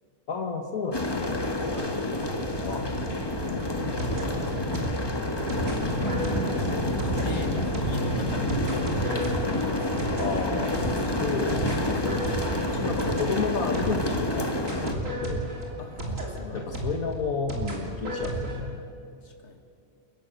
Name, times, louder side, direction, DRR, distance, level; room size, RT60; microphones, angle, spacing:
voice 1, 0.3-1.4 2.6-2.8 3.1-4.0 4.3-5.3 10.2-12.2 12.5-15.5 16.5-18.8, left 4 dB, 80° left, 4 dB, 1.9 m, -32 dB
sound 1, 0.9-14.9, left 1 dB, 20° left, 1.5 m, -28 dB
voice 2, 1.7-2.0 5.9-6.2 6.8-10.0 15.8-16.7 19.2-19.6, left 4 dB, 55° left, 4 dB, 2.2 m, -42 dB
sound 2, 3.4-14.2 14.7-18.6, right 1 dB, 65° right, 3.6 m, -34 dB
29.5 x 12.0 x 8.2 m, 2.5 s
omnidirectional pair, 1.5 m